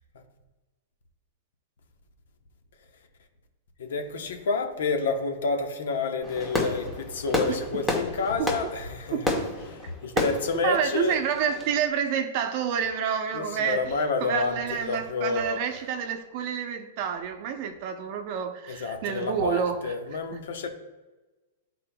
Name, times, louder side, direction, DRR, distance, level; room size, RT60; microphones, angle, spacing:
voice 1, 3.8-9.4 9.7-11.2 13.3-14.6 14.9-15.6 18.7-20.7, left 4 dB, 80° left, 1.0 m, -29 dB
Fireworks, 6.2-11.8, left 2 dB, 10° left, 0.9 m, -31 dB
voice 2, 10.6-19.9 20.3-20.4, right 7 dB, 40° right, 0.6 m, -29 dB
11.5 x 4.2 x 2.3 m
supercardioid pair, 160°, 0 cm